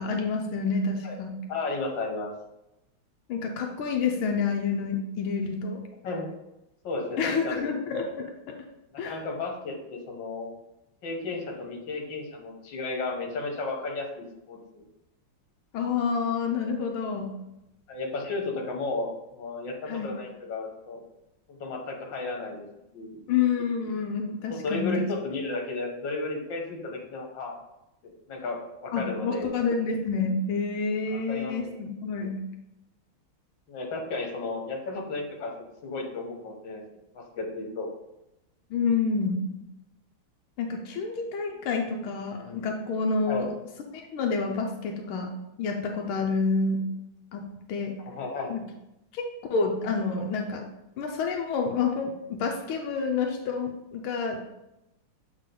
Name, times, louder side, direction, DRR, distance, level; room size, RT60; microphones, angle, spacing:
voice 1, 0.0-1.3 3.3-5.8 7.2-8.6 9.0-9.2 15.7-17.3 19.9-20.1 23.3-25.1 28.9-32.4 38.7-39.5 40.6-43.5 43.9-45.3 45.6-46.8 47.3-48.0 48.5-48.6 49.1-50.7 51.0-54.4, left 4 dB, 90° left, 2 dB, 1.6 m, -28 dB
voice 2, 1.5-2.3 6.0-6.3 6.8-7.7 8.9-10.5 11.0-14.8 17.9-21.0 21.5-22.7 22.9-23.2 24.4-27.5 28.0-29.5 31.1-31.8 33.7-35.5 35.8-36.8 37.1-37.9 43.3-43.5 48.1-48.6, left 3 dB, 65° left, 1 dB, 1.9 m, -33 dB
7.4 x 4.3 x 3.8 m, 0.90 s
omnidirectional pair, 2.3 m